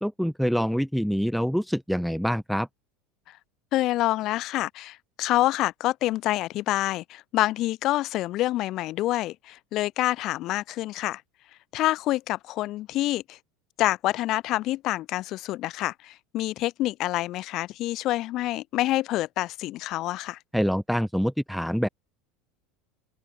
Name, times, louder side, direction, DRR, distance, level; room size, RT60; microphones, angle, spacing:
voice 1, 0.0-2.7 20.5-21.9, equal, ahead, 0.4 m, -25 dB
voice 2, 3.7-11.2 11.7-13.4 13.8-20.4, left 16 dB, 35° left, 2.2 m, -27 dB
open air
supercardioid pair, 170°, 0 cm